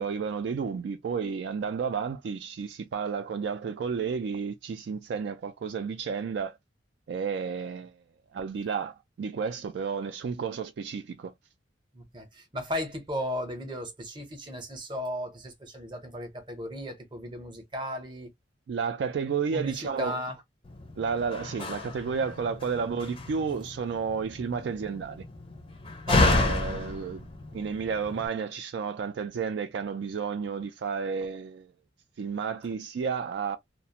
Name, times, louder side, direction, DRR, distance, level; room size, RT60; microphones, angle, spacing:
voice 1, 0.0-6.6 7.1-7.9 8.3-11.3 18.7-20.1 21.0-25.3 26.2-31.7 32.2-33.6, right 6 dB, 60° right, 0.3 m, -32 dB
voice 2, 11.9-18.3 19.5-20.4 26.1-26.6, equal, 25° right, 0.7 m, -35 dB
Slam, 20.6-28.3, left 2 dB, 30° left, 0.5 m, -31 dB
2.4 x 2.1 x 2.8 m
head